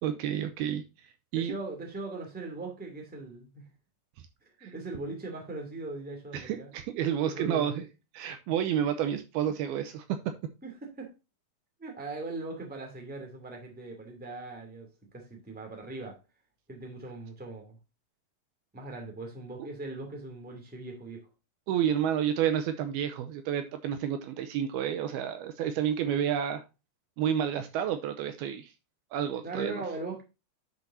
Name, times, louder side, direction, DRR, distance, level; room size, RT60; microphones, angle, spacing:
voice 1, 0.0-1.5 4.6-4.7 6.3-7.8 8.1-10.3 21.7-26.6 27.2-28.7 29.1-29.8, right 9 dB, 75° right, 2.5 m, -30 dB
voice 2, 1.3-3.7 4.6-6.7 7.3-7.8 10.6-11.1 11.8-14.9 15.1-16.2 16.7-17.8 18.7-21.3 29.4-30.2, right 2 dB, 5° right, 1.6 m, -40 dB
10.5 x 6.3 x 2.7 m
omnidirectional pair, 4.8 m